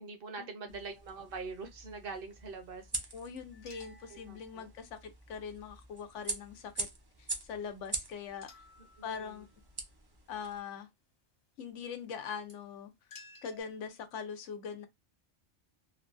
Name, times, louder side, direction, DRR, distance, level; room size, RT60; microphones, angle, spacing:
voice 1, 0.0-2.9 4.1-4.7 8.8-9.4, right 4 dB, 50° right, 1.0 m, -44 dB
sound 1, 0.7-10.6, right 3 dB, 30° right, 0.5 m, -44 dB
voice 2, 3.1-6.9 7.2-8.6 9.0-9.5 10.3-10.9 11.6-12.9 13.4-14.9, left 6 dB, 80° left, 1.0 m, -42 dB
sound 2, 3.5-5.1 8.4-9.7 12.5-12.6 13.1-13.6, left 4 dB, 60° left, 1.2 m, -56 dB
3.2 x 2.3 x 2.5 m
omnidirectional pair, 1.2 m